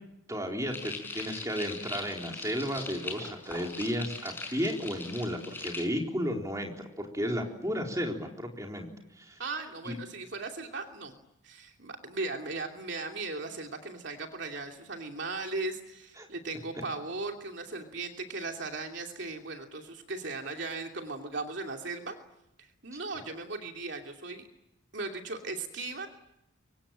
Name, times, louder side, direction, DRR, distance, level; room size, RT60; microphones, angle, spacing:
voice 1, 0.3-8.9 9.2-9.4 9.8-10.0 16.2-16.3 22.9-23.0, equal, 15° right, 1 dB, 4.0 m, -33 dB
sound 1, 0.7-5.8, left 3 dB, 10° left, 5.3 m, -40 dB
voice 2, 9.4-11.1 11.4-22.2 22.6-24.4 24.9-26.1, right 3 dB, 60° right, 3 dB, 2.8 m, -37 dB
27.0 x 24.0 x 8.9 m, 0.84 s
head